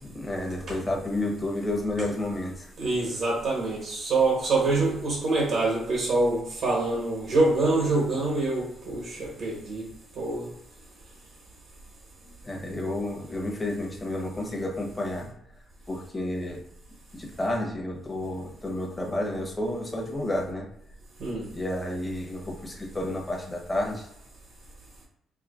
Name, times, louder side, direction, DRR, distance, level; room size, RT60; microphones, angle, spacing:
voice 1, 0.1-2.7 12.4-15.3 15.9-16.6 17.1-20.7 21.5-24.1, left 1 dB, 20° left, 0 dB, 0.9 m, -31 dB
voice 2, 2.8-9.8 10.2-10.5 21.2-21.4, right 2 dB, 70° right, -3 dB, 1.0 m, -25 dB
4.6 x 2.1 x 2.4 m, 0.74 s
cardioid pair, 90°, 0 cm